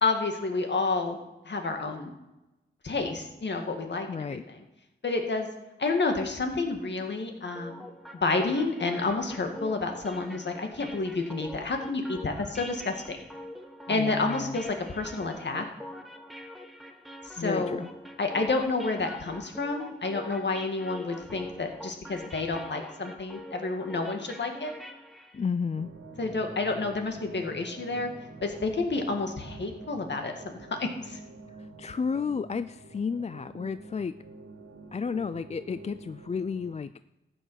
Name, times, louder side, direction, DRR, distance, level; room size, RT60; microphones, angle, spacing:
voice 1, 0.0-1.2 1.5-2.1 2.8-4.6 5.0-5.5 5.8-7.9 8.2-13.2 13.9-15.7 17.2-17.8 18.2-24.7 26.2-28.1 28.4-31.2, left 3 dB, 55° left, 4 dB, 2.1 m, -30 dB
voice 2, 4.1-4.4 13.9-14.6 17.4-17.9 25.3-25.9 31.6-34.1 34.9-36.9, left 5 dB, 30° left, 13 dB, 0.4 m, -32 dB
sound 1, 7.5-25.4, left 1 dB, ahead, 1.5 m, -44 dB
sound 2, 25.7-36.7, right 3 dB, 80° right, 1.8 m, -47 dB
14.0 x 8.8 x 6.4 m, 0.99 s
wide cardioid pair, 80°, 21 cm